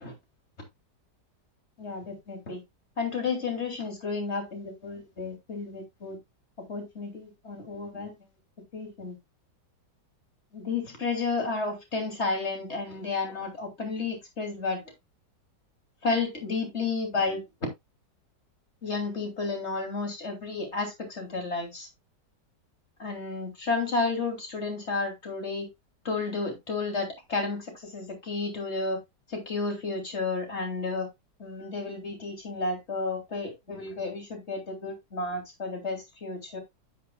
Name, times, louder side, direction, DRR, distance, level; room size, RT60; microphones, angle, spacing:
voice 1, 1.8-2.6 3.0-6.2 6.7-8.1 8.7-9.1 10.5-14.8 16.0-17.4 18.8-21.9 23.0-25.7 26.0-29.0 29.3-31.1 31.4-36.6, left 3 dB, 35° left, 3.2 m, -32 dB
9.3 x 9.0 x 2.3 m
omnidirectional pair, 1.9 m